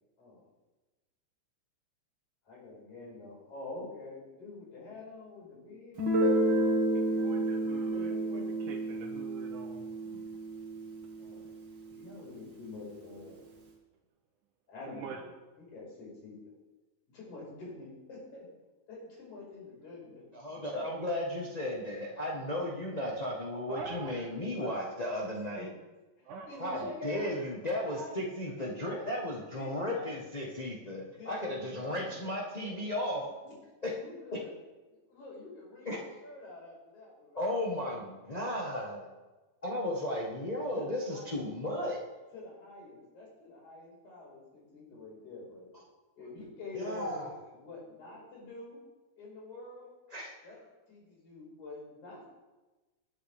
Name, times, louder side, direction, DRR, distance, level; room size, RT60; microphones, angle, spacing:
voice 1, 2.4-6.1 6.8-8.7 11.1-11.5 11.9-13.4 14.7-15.3 15.6-16.4 17.1-18.5 18.9-20.2 20.5-20.6 25.6-25.7 26.2-27.3 27.9-28.1 28.5-29.1 29.5-30.2 31.0-31.5 31.9-32.0 32.6-32.8 33.4-33.5 33.9-34.6 34.9-37.5 39.8-40.1 40.7-41.5 42.3-45.7 46.2-47.3 47.5-48.8 49.2-49.9 50.4-50.6 50.9-52.2, left 3 dB, 75° left, -5 dB, 6.8 m, -47 dB
Guitar, 6.0-11.5, right 1 dB, 40° right, 2.0 m, -30 dB
voice 2, 6.9-10.2 11.0-11.1 14.9-15.2 23.7-24.7 26.2-26.8 27.3-27.5, right 6 dB, 85° right, 1 dB, 2.5 m, -46 dB
voice 3, 20.3-25.7 26.6-33.2 33.8-33.9 34.3-34.4 35.8-36.0 37.3-39.1 39.6-42.0 46.7-47.4 50.1-50.4, left 1 dB, 35° left, -3 dB, 0.6 m, -35 dB
20.0 x 9.4 x 3.6 m, 1.2 s
omnidirectional pair, 3.4 m